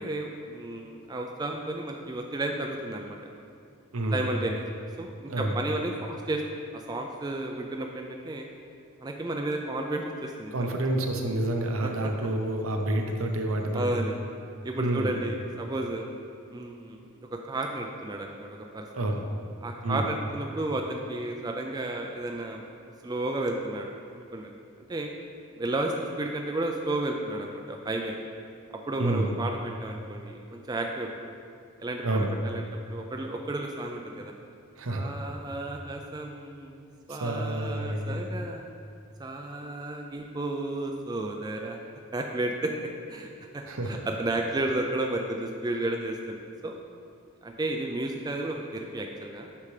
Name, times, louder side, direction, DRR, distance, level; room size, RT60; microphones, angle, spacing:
voice 1, 0.0-3.2 4.1-4.7 5.0-6.4 6.7-8.5 9.0-10.7 11.8-11.9 13.7-14.1 14.6-16.1 16.5-19.2 19.6-22.6 23.0-24.5 24.9-25.1 25.6-28.2 28.9-31.1 31.8-32.0 32.4-34.3 34.9-36.7 37.1-38.6 39.2-41.8 42.1-42.7 43.1-46.4 46.6-46.8 47.4-49.5, right 2 dB, 20° right, 2 dB, 0.3 m, -32 dB
voice 2, 10.5-14.0 14.8-15.1 18.9-19.2 19.8-20.0 29.0-29.3 32.0-32.3 34.8-35.1 37.1-38.2 43.7-44.0, right 1 dB, 75° right, 3 dB, 0.8 m, -28 dB
8.4 x 5.6 x 3.3 m, 2.4 s
head